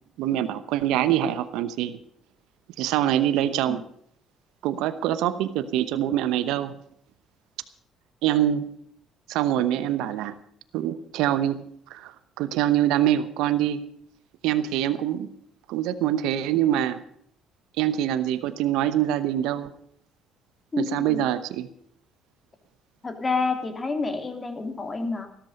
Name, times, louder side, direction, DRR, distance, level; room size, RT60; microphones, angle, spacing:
voice 1, 0.2-2.0 2.8-3.8 4.6-6.8 8.2-8.6 9.3-10.3 10.7-11.6 11.9-13.8 14.4-15.3 15.7-17.0 17.8-19.7 20.8-21.7, right 12 dB, 75° right, 13 dB, 0.9 m, -24 dB
voice 2, 20.7-21.2 23.0-25.3, left 3 dB, 30° left, 6 dB, 3.0 m, -28 dB
14.0 x 13.5 x 5.3 m, 0.67 s
hypercardioid pair, 60°, 0 cm